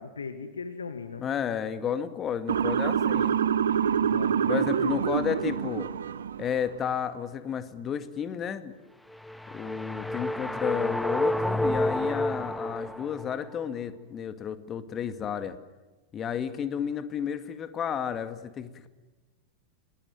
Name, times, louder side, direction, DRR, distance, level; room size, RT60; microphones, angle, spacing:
voice 1, 0.0-1.3 4.0-5.0, left 5 dB, 75° left, 10 dB, 1.6 m, -38 dB
voice 2, 1.2-3.4 4.5-5.9 6.4-8.7 9.5-15.6 16.1-18.9, left 8 dB, 25° left, 11 dB, 2.1 m, -32 dB
Motor vehicle (road) / Siren, 2.5-6.6, right 8 dB, 65° right, 1.0 m, -26 dB
sound 1, 9.1-13.4, left 1 dB, ahead, 1.1 m, -29 dB
28.5 x 20.0 x 9.4 m, 1.2 s
figure-of-eight pair, 90°, 0 cm